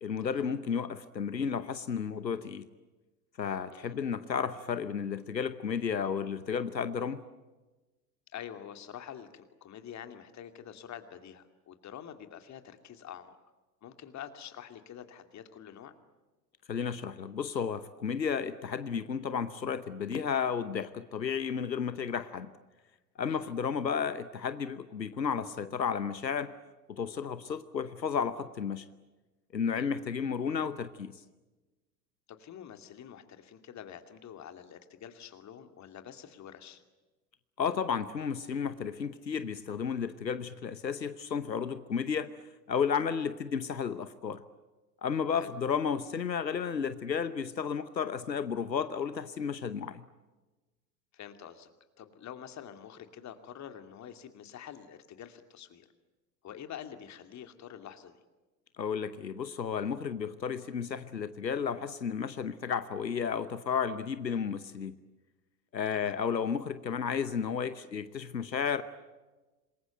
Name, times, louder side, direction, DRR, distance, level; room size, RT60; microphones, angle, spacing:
voice 1, 0.0-2.6 3.4-7.2 16.7-22.5 23.2-26.5 26.9-28.9 29.5-31.1 37.6-42.4 42.7-44.4 45.0-50.0 58.8-64.9 65.7-68.8, left 6 dB, 90° left, 13 dB, 1.0 m, -33 dB
voice 2, 8.3-13.3 13.8-15.9 23.3-23.5 29.7-29.9 32.3-36.8 45.3-45.5 51.1-51.7 52.0-55.9 56.4-58.2 65.9-66.2, left 9 dB, 35° left, 8 dB, 2.6 m, -47 dB
27.0 x 21.5 x 9.1 m, 1.2 s
figure-of-eight pair, 80°, 49 cm